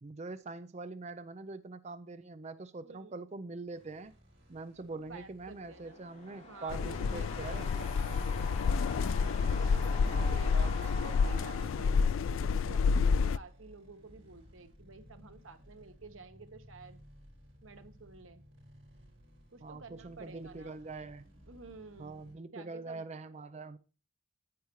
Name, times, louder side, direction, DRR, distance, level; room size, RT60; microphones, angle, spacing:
voice 1, 0.0-4.1 4.5-7.7 10.1-10.7 19.6-21.3 22.0-23.8, right 3 dB, 35° right, 0.5 m, -44 dB
sound 1, 3.7-22.3, equal, 75° right, 5.2 m, -59 dB
voice 2, 4.9-6.0 6.4-9.0 9.5-17.0 17.6-18.4 19.5-20.8 21.5-23.0, right 3 dB, 90° right, 1.3 m, -52 dB
sound 2, 5.5-12.6, left 2 dB, 35° left, 3.7 m, -46 dB
sound 3, 6.7-13.4, left 5 dB, 80° left, 0.4 m, -29 dB
10.5 x 8.5 x 3.1 m
head